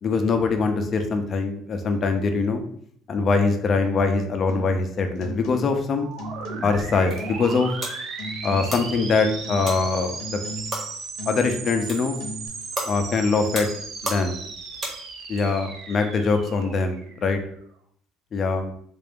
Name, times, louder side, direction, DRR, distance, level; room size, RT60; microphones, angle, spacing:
voice 1, 0.0-2.6 3.1-6.1 6.6-7.7 8.4-10.4 11.3-12.2 12.8-13.7 14.0-14.4 15.3-17.4 18.3-18.7, left 4 dB, 30° left, 6 dB, 0.4 m, -23 dB
sound 1, 4.5-4.8 5.2-5.9 6.2-6.9 7.2-7.8 8.2-8.9 9.2-9.8 10.2-10.9 11.2-11.9 12.2-12.5, equal, 70° left, 0.6 m, -37 dB
sound 2, 6.0-17.6, right 4 dB, 60° right, 0.5 m, -36 dB
sound 3, 6.8-15.4, right 1 dB, 25° right, 0.9 m, -37 dB
3.6 x 2.5 x 3.5 m, 0.64 s
cardioid pair, 175°, 0 cm